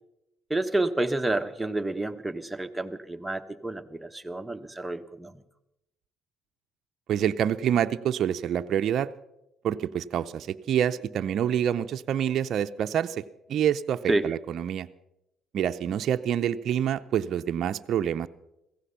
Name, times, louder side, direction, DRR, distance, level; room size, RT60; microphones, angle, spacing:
voice 1, 0.5-5.4 14.1-14.3, right 2 dB, 10° right, 7 dB, 1.2 m, -29 dB
voice 2, 7.1-9.1 9.6-13.2 13.5-14.9 15.5-18.3, right 9 dB, 60° right, 9 dB, 0.6 m, -27 dB
16.0 x 16.0 x 5.7 m, 0.87 s
hypercardioid pair, 60°, 0 cm